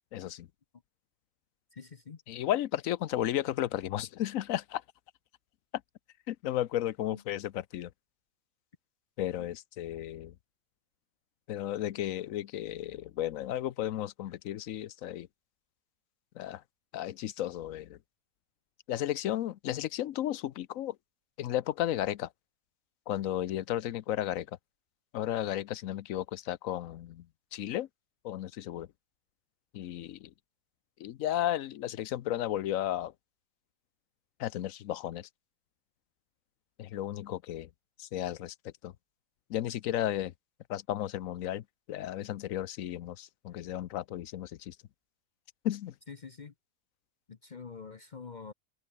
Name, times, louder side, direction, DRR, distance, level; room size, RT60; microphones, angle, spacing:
voice 1, 0.1-0.5 2.3-4.8 6.3-7.9 9.2-10.3 11.5-15.3 16.4-16.6 16.9-18.0 18.9-20.9 21.4-22.3 23.1-24.5 25.1-27.2 27.5-27.9 28.2-28.9 29.7-30.3 31.0-33.1 34.4-35.3 36.8-37.7 38.0-38.5 38.8-38.9 39.5-40.3 40.7-44.7 45.6-45.9, left 12 dB, 65° left, 0.9 m, -34 dB
voice 2, 1.7-2.2 7.0-7.2 9.4-9.5 46.1-46.5 47.3-48.5, left 5 dB, 45° left, 0.6 m, -46 dB
omnidirectional pair, 1.8 m